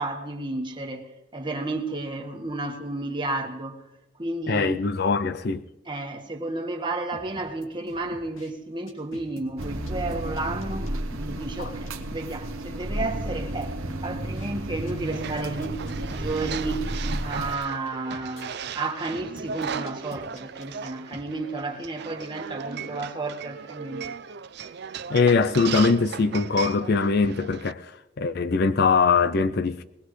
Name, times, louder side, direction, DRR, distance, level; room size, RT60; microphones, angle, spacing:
voice 1, 0.0-3.8 4.2-4.8 5.9-24.0, right 2 dB, 20° right, 1.5 m, -32 dB
voice 2, 4.5-5.6 11.6-11.7 25.1-27.9 28.2-29.8, left 4 dB, 50° left, 0.5 m, -22 dB
sound 1, 7.1-8.5 8.9-12.3 12.6-12.7 13.1-14.5 14.9-18.4 19.1-21.2, left 1 dB, 85° left, 2.4 m, -46 dB
sound 2, 9.6-17.6, right 1 dB, 85° right, 1.2 m, -32 dB
sound 3, 15.0-27.7, right 7 dB, 55° right, 0.4 m, -37 dB
21.0 x 20.0 x 3.2 m
head